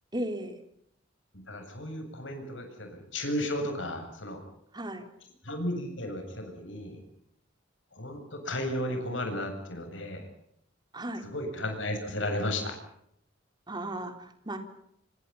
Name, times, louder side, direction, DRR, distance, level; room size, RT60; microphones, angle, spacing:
voice 1, 0.1-0.6 4.7-5.1 10.9-11.2 13.7-14.6, right 1 dB, 20° right, 7 dB, 3.6 m, -35 dB
voice 2, 1.5-4.4 5.4-7.0 7.9-10.3 11.2-12.7, left 1 dB, 75° left, 5 dB, 7.7 m, -34 dB
27.5 x 25.5 x 5.6 m, 0.74 s
head